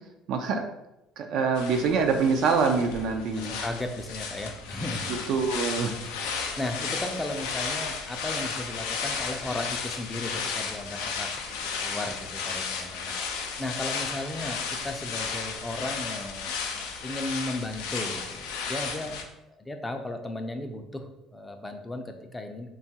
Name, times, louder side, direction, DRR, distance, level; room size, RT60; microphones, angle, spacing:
voice 1, 0.3-0.6 1.2-3.5 5.3-5.9, right 5 dB, 65° right, 4 dB, 0.3 m, -25 dB
sound 1, 1.6-19.2, left 5 dB, 85° left, 0.3 m, -34 dB
voice 2, 3.4-5.2 6.2-13.1 13.6-19.2 19.6-22.7, left 1 dB, 15° left, 6 dB, 0.4 m, -35 dB
2.8 x 2.3 x 2.8 m, 0.90 s
supercardioid pair, 85°, 0 cm